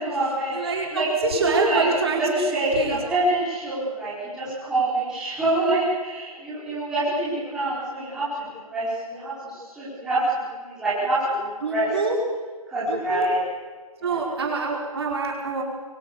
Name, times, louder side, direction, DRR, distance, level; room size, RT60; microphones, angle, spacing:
voice 1, 0.0-1.1 1.4-1.9 2.2-11.9 12.7-13.4 14.0-14.2, right 1 dB, 5° right, -11 dB, 5.0 m, -26 dB
voice 2, 0.5-3.0 11.6-12.2 12.9-13.3 14.0-15.6, right 4 dB, 45° right, 0 dB, 4.9 m, -26 dB
27.0 x 24.0 x 7.0 m, 1.4 s
hypercardioid pair, 175°, 19 cm